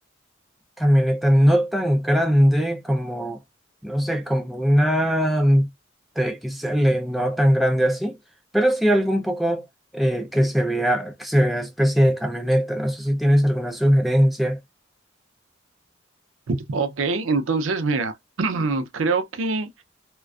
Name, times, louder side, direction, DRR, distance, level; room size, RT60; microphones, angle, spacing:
voice 1, 0.8-3.4 3.8-5.7 6.2-8.2 8.5-9.6 9.9-14.6, equal, ahead, 0.3 m, -20 dB
voice 2, 16.5-19.8, right 3 dB, 80° right, 0.5 m, -24 dB
2.4 x 2.2 x 2.3 m
head